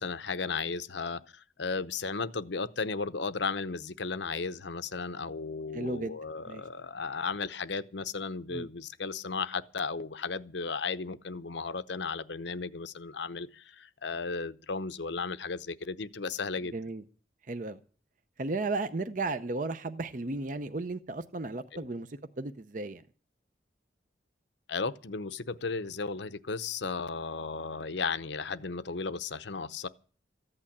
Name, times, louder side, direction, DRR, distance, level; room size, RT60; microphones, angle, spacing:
voice 1, 0.0-16.7 21.7-21.9 24.7-29.9, left 4 dB, 70° left, 0.8 m, -35 dB
voice 2, 5.7-6.2 6.5-6.6 8.5-8.7 16.7-17.0 17.5-17.8 18.4-23.0, right 3 dB, 40° right, 0.6 m, -34 dB
14.5 x 8.9 x 8.6 m
head